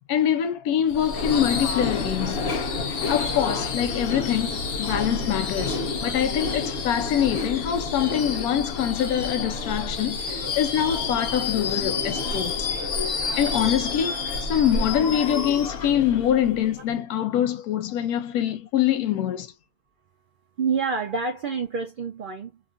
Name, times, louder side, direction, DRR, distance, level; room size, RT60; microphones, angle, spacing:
voice 1, 0.1-2.4 3.1-12.7 13.4-14.2 14.5-19.5, left 10 dB, 80° left, 1.1 m, -24 dB
Subway metro underground / Screech, 0.9-16.8, left 4 dB, 65° left, 0.5 m, -29 dB
voice 2, 20.6-22.6, right 5 dB, 90° right, 0.4 m, -27 dB
2.7 x 2.4 x 2.4 m
omnidirectional pair, 1.6 m